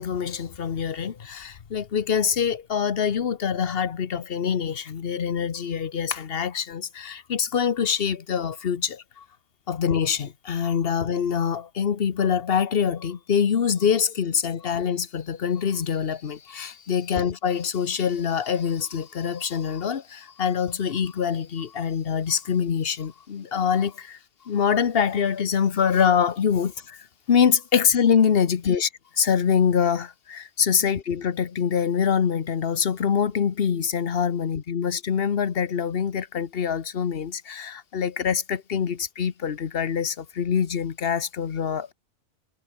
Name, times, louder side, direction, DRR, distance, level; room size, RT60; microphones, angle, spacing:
voice 1, 0.0-9.2 9.7-24.2 24.4-28.9 29.2-41.9, left 7 dB, 45° left, 1.1 m, -25 dB
omnidirectional pair, 1.5 m